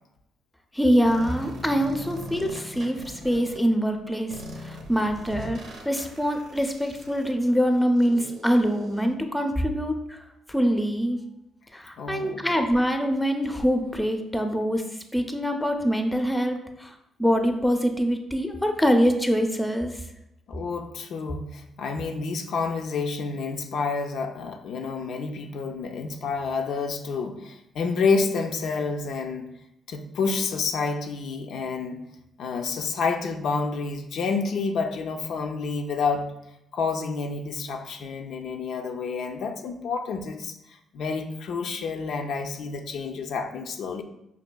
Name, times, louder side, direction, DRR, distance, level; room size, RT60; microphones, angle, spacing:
voice 1, 0.7-10.2 10.5-11.2 11.7-14.8 15.1-16.9 17.2-19.9, equal, 5° left, 5 dB, 0.4 m, -24 dB
sound 1, 1.1-3.6 4.3-9.1, equal, 75° right, 0.6 m, -41 dB
voice 2, 12.0-12.4 20.5-29.5 29.9-32.0 32.4-36.3 36.7-40.5 40.9-44.0, left 4 dB, 75° left, 5 dB, 0.3 m, -29 dB
5.1 x 2.6 x 2.2 m, 0.82 s
cardioid pair, 90°, 0 cm